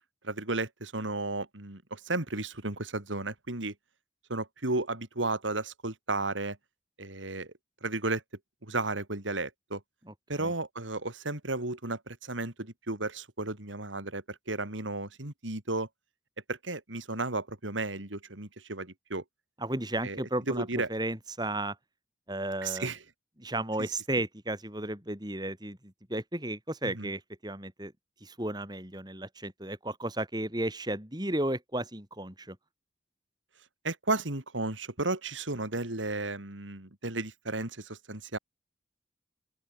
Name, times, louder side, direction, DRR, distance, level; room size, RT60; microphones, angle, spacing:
voice 1, 0.2-3.7 4.3-6.6 7.0-7.5 7.8-8.2 8.6-9.8 10.3-15.9 16.5-19.2 20.0-20.2 20.5-20.9 22.6-23.0 23.8-23.9 26.8-27.1 33.8-38.4, right 2 dB, 90° right, 3.5 m, -33 dB
voice 2, 19.6-21.8 22.3-22.9 23.4-27.9 28.2-32.6, right 1 dB, 20° right, 4.6 m, -34 dB
open air
head